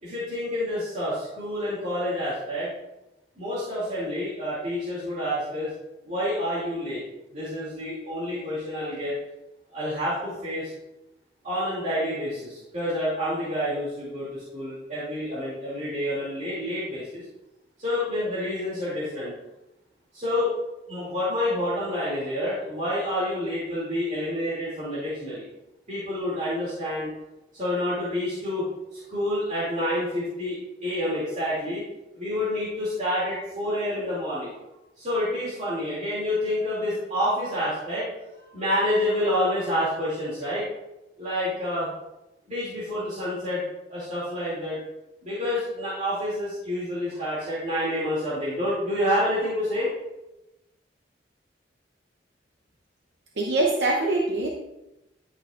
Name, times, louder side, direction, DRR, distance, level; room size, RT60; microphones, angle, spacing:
voice 1, 0.0-2.7 3.4-5.7 6.0-7.0 7.3-9.2 9.7-10.7 11.4-17.3 17.8-19.3 20.1-20.6 20.9-25.4 25.9-27.1 27.5-31.8 32.1-34.5 35.0-38.1 38.5-40.7 41.2-41.9 42.5-43.6 43.9-44.8 45.2-49.9, left 1 dB, 40° right, -10 dB, 2.6 m, -28 dB
voice 2, 53.4-54.5, right 2 dB, 75° right, -1 dB, 0.8 m, -23 dB
11.0 x 6.4 x 2.5 m, 0.96 s
head